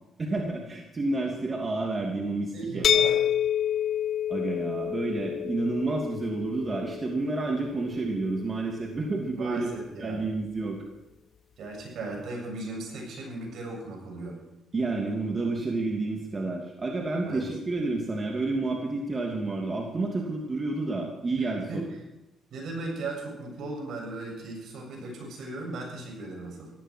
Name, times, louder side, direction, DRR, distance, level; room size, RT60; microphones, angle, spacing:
voice 1, 0.2-3.1 4.3-9.7 10.0-10.8 14.7-21.8, right 2 dB, 30° right, 0 dB, 2.8 m, -30 dB
voice 2, 2.5-3.2 9.4-10.2 11.6-14.4 17.2-17.4 21.4-21.8 22.5-26.7, right 2 dB, 70° right, 1 dB, 7.6 m, -37 dB
sound 1, 2.8-8.6, left 9 dB, 55° left, 0.4 m, -29 dB
17.5 x 15.5 x 4.7 m, 0.95 s
cardioid pair, 90°, 0 cm